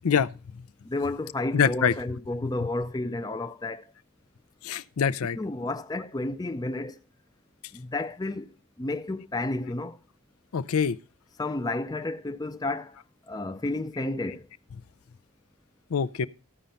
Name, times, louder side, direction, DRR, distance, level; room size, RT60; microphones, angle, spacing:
voice 1, 0.8-3.9 5.3-7.0 7.7-10.0 11.4-13.0 13.3-14.5, left 2 dB, 15° left, 0.4 m, -31 dB
voice 2, 1.5-1.9 4.6-5.4 10.5-11.0 15.9-16.3, left 7 dB, 80° left, 0.5 m, -24 dB
13.5 x 5.2 x 5.5 m
head